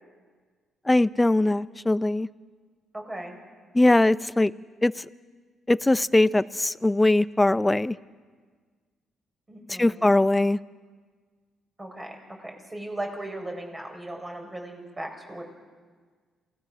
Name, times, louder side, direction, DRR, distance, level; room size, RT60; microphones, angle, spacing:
voice 1, 0.9-2.3 3.7-4.5 4.8-5.1 5.7-8.0 9.7-10.6, left 2 dB, 15° left, 17 dB, 0.5 m, -21 dB
voice 2, 2.9-3.4 9.5-10.1 11.8-15.4, right 1 dB, 20° right, 3 dB, 4.6 m, -37 dB
27.5 x 17.5 x 6.1 m, 1.5 s
cardioid pair, 90°, 0 cm